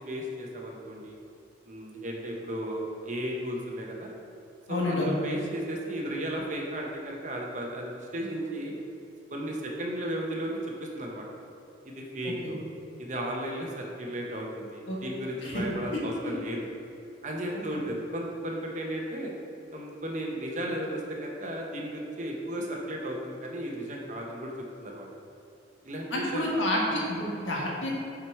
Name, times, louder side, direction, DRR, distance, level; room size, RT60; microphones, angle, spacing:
voice 1, 0.1-1.2 1.7-4.1 4.7-8.7 9.3-11.3 11.8-12.6 13.0-16.7 17.2-19.3 19.7-24.5 24.8-25.1 25.8-26.4 26.9-27.1, right 1 dB, 40° right, 0 dB, 0.9 m, -34 dB
voice 2, 4.7-5.1 14.9-15.0 15.5-15.6 15.9-16.0 26.1-27.9, left 1 dB, 80° left, -3 dB, 1.5 m, -28 dB
6.1 x 5.0 x 4.6 m, 2.7 s
head